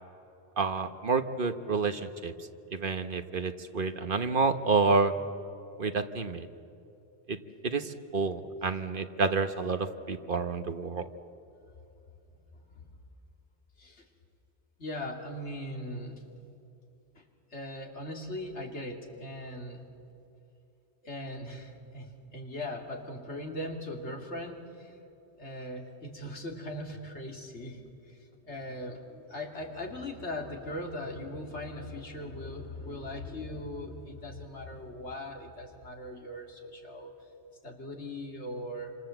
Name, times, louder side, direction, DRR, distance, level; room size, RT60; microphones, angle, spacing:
voice 1, 0.6-2.3 2.7-5.1 5.8-6.5 7.3-7.4 7.6-11.1, right 4 dB, 50° right, 9 dB, 1.2 m, -29 dB
voice 2, 14.8-16.2 17.1-17.2 17.5-19.8 21.0-25.0 25.4-27.8 28.1-28.2 28.4-37.1 37.6-39.0, left 1 dB, 85° left, 2 dB, 3.2 m, -39 dB
28.0 x 26.0 x 7.9 m, 2.8 s
omnidirectional pair, 1.1 m